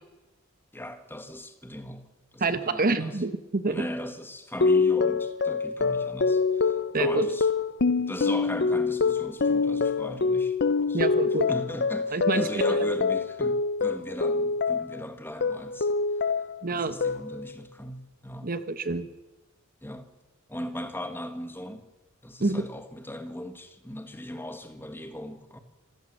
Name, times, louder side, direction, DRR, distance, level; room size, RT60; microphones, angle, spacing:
voice 1, 0.7-2.1 2.3-3.2 3.6-7.5 8.1-10.6 10.9-11.1 11.5-15.9 16.2-16.3 16.7-18.5 19.8-20.1 20.5-21.9 22.2-25.6, left 1 dB, 10° left, 1.6 m, -38 dB
voice 2, 2.4-3.9 6.9-7.3 10.9-11.5 12.1-12.5 12.8-12.9 16.6-16.9 18.4-19.1 22.4-22.7, right 3 dB, 45° right, 1.1 m, -27 dB
sound 1, 4.6-15.0 15.4-16.6 17.0-17.5, left 4 dB, 50° left, 0.7 m, -25 dB
26.0 x 15.0 x 7.7 m
head